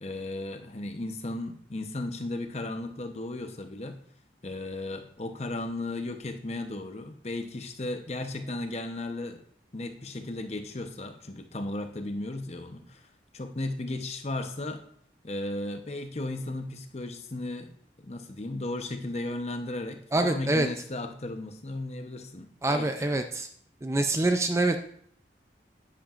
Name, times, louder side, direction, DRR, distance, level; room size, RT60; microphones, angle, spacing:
voice 1, 0.0-4.0 4.4-9.4 9.7-13.1 13.3-14.8 15.2-23.1, left 2 dB, 35° left, 7 dB, 0.8 m, -35 dB
voice 2, 20.1-20.7 22.6-23.5 23.8-24.8, right 2 dB, 15° right, 7 dB, 0.4 m, -25 dB
10.5 x 10.0 x 2.5 m, 0.64 s
head